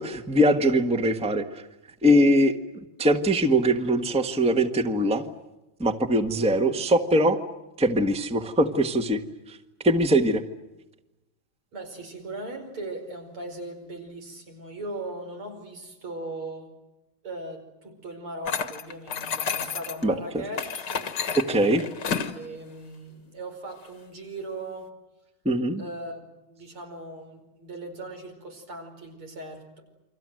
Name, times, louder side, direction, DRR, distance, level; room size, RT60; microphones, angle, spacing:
voice 1, 0.0-1.6 2.0-2.5 3.0-5.2 5.8-7.4 7.8-9.2 9.5-9.6 9.8-10.4 20.0-20.4 21.3-21.8 25.4-25.8, equal, 5° right, 8 dB, 1.2 m, -22 dB
voice 2, 11.7-16.7 17.2-21.1 22.0-24.9 25.8-29.8, right 2 dB, 90° right, 3 dB, 6.0 m, -39 dB
sound 1, 18.5-20.0 20.5-22.4, left 6 dB, 55° left, 2.0 m, -31 dB
29.0 x 24.5 x 7.7 m, 0.96 s
omnidirectional pair, 2.3 m